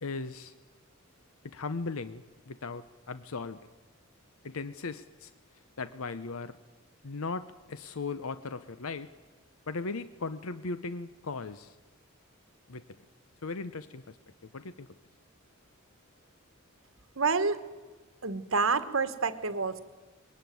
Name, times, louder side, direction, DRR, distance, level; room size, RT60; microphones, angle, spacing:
voice 1, 0.0-0.5 1.4-3.6 4.4-5.3 5.8-6.6 7.0-9.1 9.7-11.7 12.7-12.8 13.4-14.2 14.4-14.9, left 3 dB, 80° left, 13 dB, 0.8 m, -37 dB
voice 2, 17.2-17.6 18.2-19.8, right 4 dB, 70° right, 12 dB, 1.5 m, -28 dB
21.5 x 18.5 x 9.4 m, 1.3 s
head